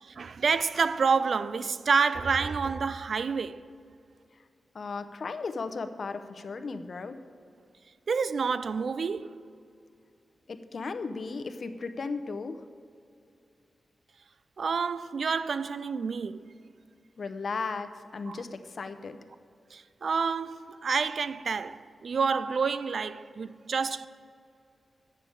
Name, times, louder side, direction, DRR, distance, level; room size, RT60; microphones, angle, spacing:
voice 1, 0.0-3.6 8.1-9.4 14.6-16.5 18.3-18.4 19.7-24.1, right 5 dB, 65° right, 0.4 m, -28 dB
voice 2, 4.7-7.2 10.5-12.6 17.2-19.2, left 4 dB, 60° left, 0.7 m, -36 dB
9.6 x 6.8 x 7.5 m
wide cardioid pair, 90°, 0 cm